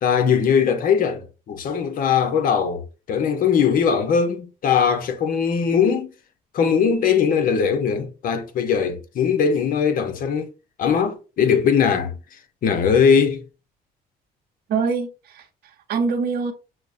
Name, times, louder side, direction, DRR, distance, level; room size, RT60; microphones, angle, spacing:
voice 1, 0.0-6.1 6.5-10.5 10.8-12.2 12.6-13.4, left 6 dB, 55° left, 0.8 m, -20 dB
voice 2, 14.7-16.5, right 5 dB, 65° right, 0.8 m, -25 dB
6.3 x 2.1 x 2.5 m
cardioid pair, 110°, 17 cm